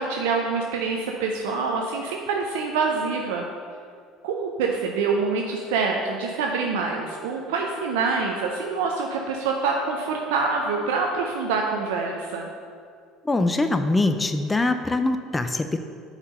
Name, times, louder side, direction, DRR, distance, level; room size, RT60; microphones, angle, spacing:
voice 1, 0.0-3.5 4.2-12.5, right 4 dB, 75° right, 1 dB, 0.6 m, -26 dB
voice 2, 13.2-15.8, left 2 dB, 15° left, 8 dB, 0.4 m, -23 dB
5.2 x 4.8 x 6.4 m, 2.1 s
hypercardioid pair, 65°, 0 cm